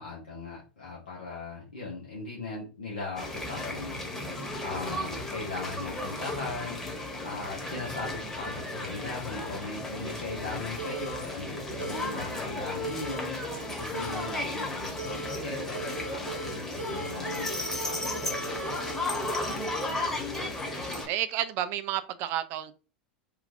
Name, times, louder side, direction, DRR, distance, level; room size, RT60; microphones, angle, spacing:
voice 1, 0.0-4.0 4.4-18.3 18.6-18.9 20.3-20.5, left 3 dB, 80° left, 0.8 m, -39 dB
sound 1, 3.2-21.1, left 2 dB, 10° left, 1.1 m, -34 dB
sound 2, 10.8-11.1 11.8-12.1 12.8-13.2 13.9-14.3 15.0-15.4 15.7-16.5 16.8-20.5, right 4 dB, 85° right, 0.8 m, -40 dB
voice 2, 20.5-22.8, right 12 dB, 50° right, 0.4 m, -32 dB
3.0 x 2.3 x 2.6 m
figure-of-eight pair, 85°, 5 cm